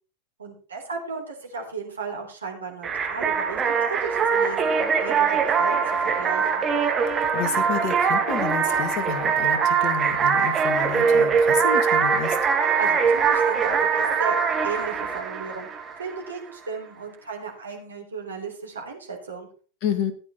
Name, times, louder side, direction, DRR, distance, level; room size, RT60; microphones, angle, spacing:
voice 1, 0.4-6.7 12.8-14.4 14.6-15.7 16.0-19.5, right 5 dB, 70° right, 2 dB, 4.0 m, -35 dB
sound 1, 2.8-16.3, right 6 dB, 20° right, 2.3 m, -22 dB
voice 2, 7.1-12.4 19.8-20.1, left 8 dB, 40° left, 8 dB, 2.0 m, -30 dB
15.5 x 8.8 x 4.4 m, 0.38 s
figure-of-eight pair, 90°, 0 cm